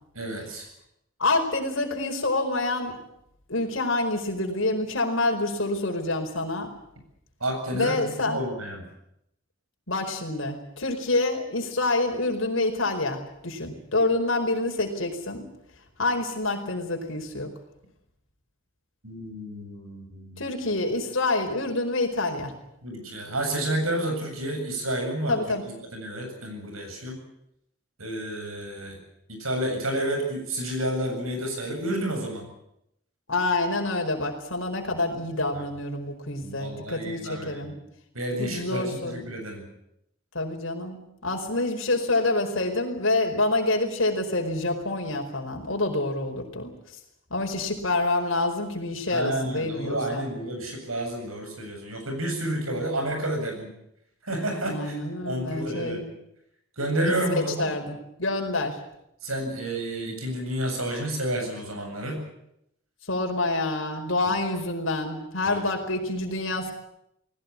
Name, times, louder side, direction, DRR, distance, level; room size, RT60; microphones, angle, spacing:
voice 1, 0.1-0.7 7.4-8.9 19.0-20.5 22.8-25.4 25.6-27.2 28.0-29.0 29.3-32.5 35.5-35.6 36.4-37.7 38.1-39.7 49.1-53.7 54.2-55.0 55.2-56.0 56.8-57.6 59.2-62.2 64.3-64.4 65.5-65.6, right 1 dB, 85° right, 4 dB, 7.8 m, -30 dB
voice 2, 1.2-3.0 3.5-6.7 7.7-8.4 9.9-15.4 16.0-17.5 20.4-22.5 25.3-25.6 33.3-37.7 38.4-39.2 40.3-46.7 47.3-50.3 52.6-52.8 54.6-56.0 57.0-58.8 63.0-66.7, left 2 dB, 65° left, 2 dB, 4.7 m, -27 dB
20.0 x 18.0 x 9.8 m, 0.79 s
head